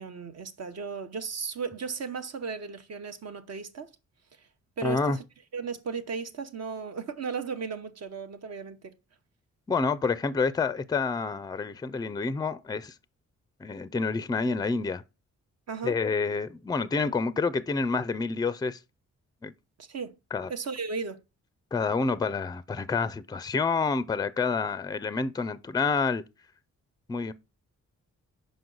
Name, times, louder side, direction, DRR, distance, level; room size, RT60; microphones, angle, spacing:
voice 1, 0.0-3.9 4.8-5.2 5.5-8.9 15.7-16.0 19.8-20.2 20.5-21.2, right 5 dB, 55° right, 0.9 m, -35 dB
voice 2, 4.8-5.2 9.7-12.9 13.6-15.0 15.8-18.8 19.4-19.5 20.3-20.5 21.7-26.2 27.1-27.3, left 4 dB, 15° left, 0.4 m, -28 dB
6.1 x 5.2 x 3.9 m
wide cardioid pair, 120°, 30 cm